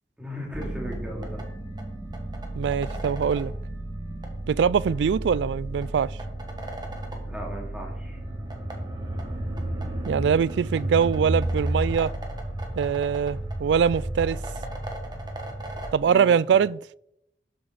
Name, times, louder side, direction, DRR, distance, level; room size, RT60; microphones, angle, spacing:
voice 1, 0.2-1.4 7.2-8.2 16.0-16.4, equal, 5° right, 2.7 m, -37 dB
sound 1, 0.5-15.9, right 1 dB, 25° right, 1.7 m, -32 dB
voice 2, 2.5-3.5 4.5-6.1 10.1-12.1 12.8-14.4 15.9-16.8, right 7 dB, 85° right, 0.3 m, -23 dB
13.0 x 7.7 x 4.0 m
head